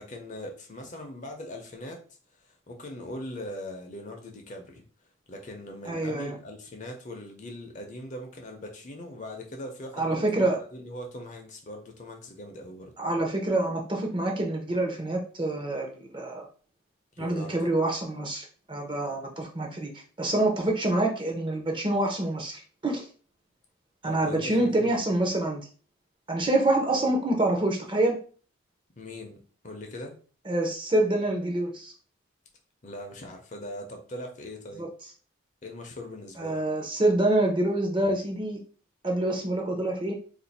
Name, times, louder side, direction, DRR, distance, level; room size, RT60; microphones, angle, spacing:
voice 1, 0.0-2.0 2.4-4.8 5.3-12.9 17.1-17.5 24.1-25.0 29.0-29.4 29.6-30.1 32.8-34.8 35.6-36.6, left 1 dB, 40° left, 2 dB, 0.7 m, -40 dB
voice 2, 5.9-6.3 9.9-10.6 13.0-16.5 17.2-19.9 20.2-23.0 24.0-25.6 26.3-28.2 30.5-31.9 34.8-34.9 36.4-38.6 39.0-40.2, right 2 dB, 25° right, 1 dB, 0.7 m, -26 dB
2.6 x 2.5 x 4.1 m, 0.40 s
head